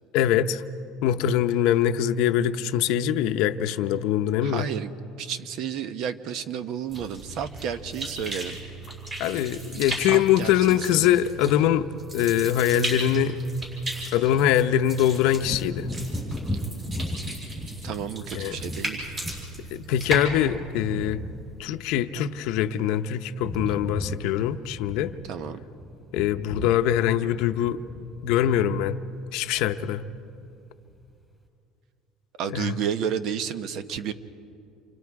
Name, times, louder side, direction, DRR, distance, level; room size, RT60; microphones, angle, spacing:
voice 1, 0.1-0.6 1.0-4.7 9.2-11.9 12.1-13.4 14.1-15.9 18.3-18.6 19.7-21.2 21.6-25.1 26.1-27.8 28.2-29.0 29.3-30.0 32.5-32.7, left 10 dB, 70° left, 9 dB, 0.7 m, -23 dB
voice 2, 4.4-4.9 5.2-8.6 10.1-11.1 17.8-19.1 25.3-25.6 32.4-34.1, right 8 dB, 60° right, 11 dB, 1.0 m, -31 dB
sound 1, 6.9-21.8, right 2 dB, 30° right, 6.7 m, -36 dB
Wind / Thunder, 15.4-23.0 23.2-30.5 30.9-31.0, left 1 dB, 5° right, 3.3 m, -38 dB
29.0 x 25.5 x 4.8 m, 2.7 s
cardioid pair, 145°, 0 cm